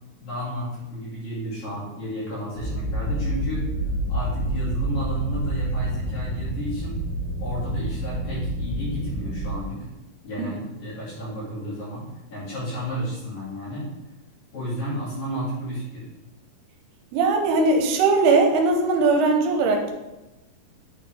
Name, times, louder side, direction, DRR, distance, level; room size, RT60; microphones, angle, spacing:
voice 1, 0.2-3.7 4.1-7.0 7.4-9.9 10.2-13.9 14.5-16.1, equal, 50° left, -9 dB, 3.6 m, -32 dB
sound 1, 2.5-9.6, right 1 dB, 15° left, 1.1 m, -28 dB
voice 2, 17.1-19.9, right 3 dB, 80° right, 3 dB, 2.7 m, -20 dB
8.9 x 4.3 x 3.5 m, 1.0 s
omnidirectional pair, 4.7 m